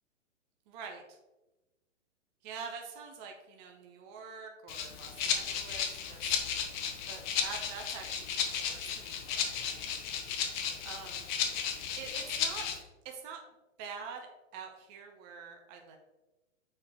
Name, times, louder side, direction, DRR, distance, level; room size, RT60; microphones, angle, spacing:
voice 1, 0.7-1.2 2.4-6.3 7.1-9.4 9.7-9.9 10.8-11.4 12.0-12.7 13.0-13.4 13.8-14.3 14.5-16.0, right 6 dB, 35° right, 3 dB, 0.8 m, -45 dB
Rattle (instrument), 4.7-12.8, left 7 dB, 35° left, 0.8 m, -34 dB
6.0 x 4.4 x 3.6 m, 1.1 s
hypercardioid pair, 125°, 39 cm